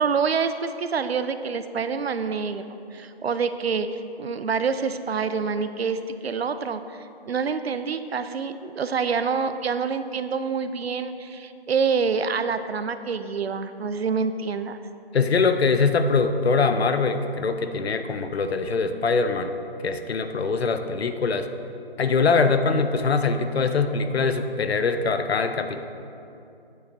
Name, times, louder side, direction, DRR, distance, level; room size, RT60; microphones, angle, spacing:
voice 1, 0.0-2.6 2.9-14.8, right 5 dB, 75° right, 11 dB, 0.5 m, -27 dB
voice 2, 15.1-19.5 19.8-21.5 22.0-25.8, left 4 dB, 75° left, 8 dB, 0.6 m, -23 dB
8.4 x 6.6 x 3.3 m, 2.7 s
figure-of-eight pair, 170°, 31 cm